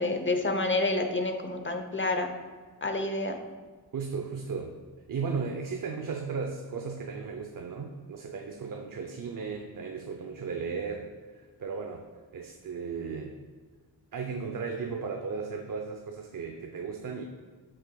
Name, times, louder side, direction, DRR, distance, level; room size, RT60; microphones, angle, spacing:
voice 1, 0.0-2.3 2.8-3.4, left 2 dB, 30° left, 6 dB, 0.8 m, -28 dB
voice 2, 3.9-4.7 5.1-11.1 11.6-12.0 12.3-13.3 14.1-17.3, right 5 dB, 55° right, 3 dB, 0.6 m, -35 dB
7.6 x 6.0 x 2.3 m, 1.5 s
cardioid pair, 60°, 39 cm